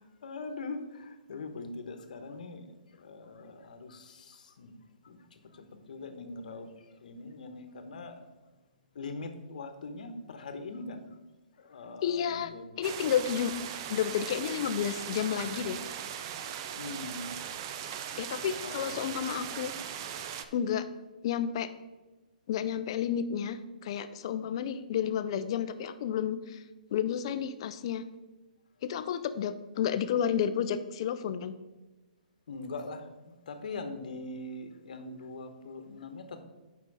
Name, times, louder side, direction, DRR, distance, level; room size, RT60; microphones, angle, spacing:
voice 1, 0.0-2.7 3.0-4.7 5.0-6.7 7.0-8.2 8.9-11.0 11.6-12.7 16.7-17.4 18.6-19.0 32.5-36.4, left 3 dB, 65° left, 8 dB, 1.1 m, -42 dB
voice 2, 12.0-12.5 12.8-13.5 13.9-15.8 18.2-19.7 20.5-20.9 21.2-21.7 22.5-26.6 26.9-28.0 28.8-31.5, left 9 dB, 40° left, 12 dB, 0.5 m, -31 dB
sound 1, 12.8-20.5, right 9 dB, 30° right, 0.5 m, -39 dB
7.6 x 5.6 x 4.7 m, 1.1 s
hypercardioid pair, 160°, 5 cm